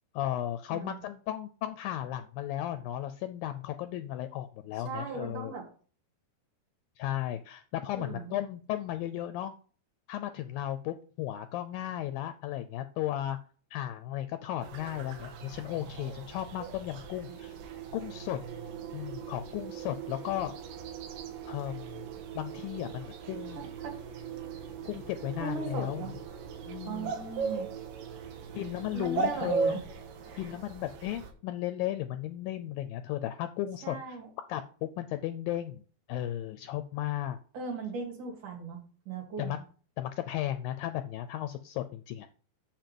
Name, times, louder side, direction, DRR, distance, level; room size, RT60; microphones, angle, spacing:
voice 1, 0.1-5.5 7.0-9.5 10.1-13.4 13.7-17.6 17.9-18.4 18.9-20.5 21.5-22.1 22.3-23.6 24.9-26.1 26.7-27.1 28.5-29.8 30.4-34.2 34.5-35.8 36.1-37.4 39.4-39.6 40.0-42.3, left 12 dB, 80° left, 9 dB, 2.1 m, -35 dB
voice 2, 4.7-5.6 8.0-8.3 23.6-23.9 25.4-26.2 26.9-27.7 28.5-28.6 28.9-29.8 30.2-30.5 33.8-34.3 37.5-39.6, right 4 dB, 55° right, -1 dB, 3.6 m, -39 dB
sound 1, 14.6-31.3, right 5 dB, 85° right, 3.3 m, -39 dB
sound 2, 16.8-31.2, right 11 dB, 70° right, 2.3 m, -45 dB
7.5 x 7.5 x 5.3 m, 0.42 s
omnidirectional pair, 4.5 m